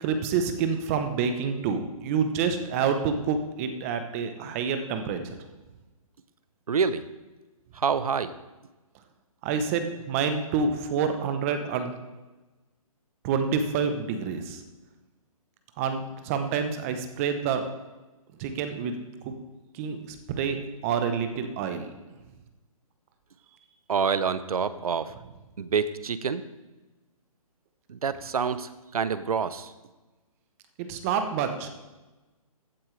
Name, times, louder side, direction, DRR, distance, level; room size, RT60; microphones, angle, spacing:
voice 1, 0.0-5.2 9.4-11.9 13.2-14.6 15.8-17.6 18.4-18.9 19.2-19.3 19.8-20.0 20.3-21.9 30.8-31.7, right 6 dB, 25° right, 7 dB, 0.8 m, -28 dB
voice 2, 6.7-7.0 7.8-8.3 23.9-25.0 25.6-26.4 27.9-28.7 28.9-29.7, right 6 dB, 75° right, 14 dB, 0.8 m, -26 dB
15.5 x 8.6 x 3.3 m, 1.1 s
hypercardioid pair, 150°, 19 cm